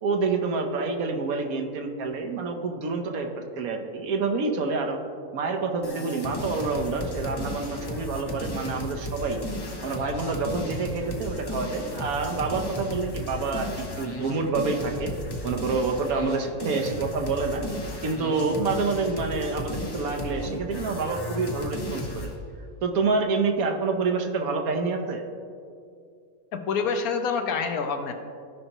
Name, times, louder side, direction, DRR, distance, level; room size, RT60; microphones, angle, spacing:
voice 1, 0.0-5.0 5.3-9.4 9.8-15.1 15.4-17.6 18.0-22.3 22.8-25.2, right 4 dB, 85° right, 4 dB, 1.3 m, -27 dB
sound 1, 5.8-22.3, left 1 dB, 25° left, 0.6 m, -34 dB
voice 2, 26.5-28.1, left 5 dB, 90° left, 6 dB, 1.2 m, -27 dB
14.5 x 5.4 x 3.0 m, 2.3 s
omnidirectional pair, 1.5 m